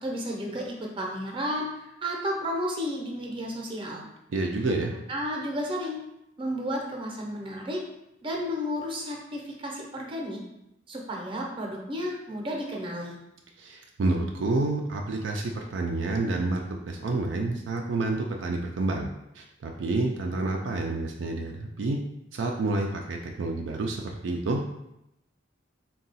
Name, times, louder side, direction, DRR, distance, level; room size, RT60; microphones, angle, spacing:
voice 1, 0.0-4.1 5.1-6.0 6.4-7.8 8.2-10.4 10.9-13.2, equal, 25° right, -1 dB, 0.7 m, -32 dB
voice 2, 4.3-4.9 13.6-19.1 19.3-22.0 22.3-24.6, right 2 dB, 70° right, 1 dB, 0.4 m, -29 dB
3.7 x 2.3 x 4.0 m, 0.85 s
head